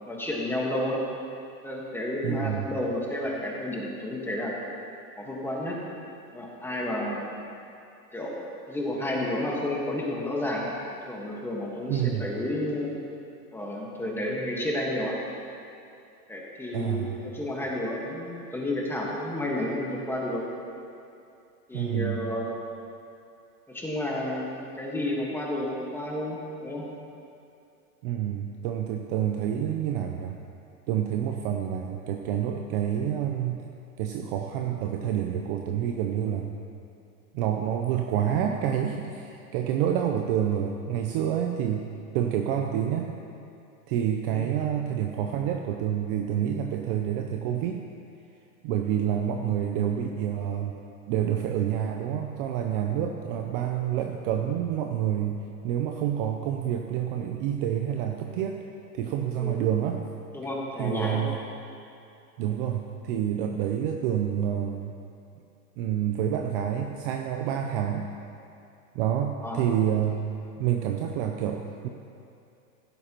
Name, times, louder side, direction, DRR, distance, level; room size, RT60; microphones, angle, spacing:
voice 1, 0.0-1.0 1.6-4.5 5.2-5.8 6.3-7.3 8.1-10.7 11.1-12.9 13.5-15.1 16.3-20.4 21.7-22.6 23.7-26.9 44.3-44.5 59.3-59.5 60.3-61.2 69.4-69.6, left 1 dB, 5° left, -3 dB, 1.5 m, -31 dB
voice 2, 2.2-2.7 11.9-12.3 16.7-17.2 21.7-22.2 28.0-30.4 30.9-33.7 34.0-36.5 37.3-41.9 42.1-43.1 43.9-47.8 48.6-50.8 51.1-58.6 58.9-60.0 60.8-61.4 62.4-65.0 65.8-68.1 68.9-70.2 70.6-71.9, right 9 dB, 35° right, 3 dB, 0.6 m, -28 dB
15.5 x 12.0 x 3.0 m, 2.6 s
hypercardioid pair, 135°, 46 cm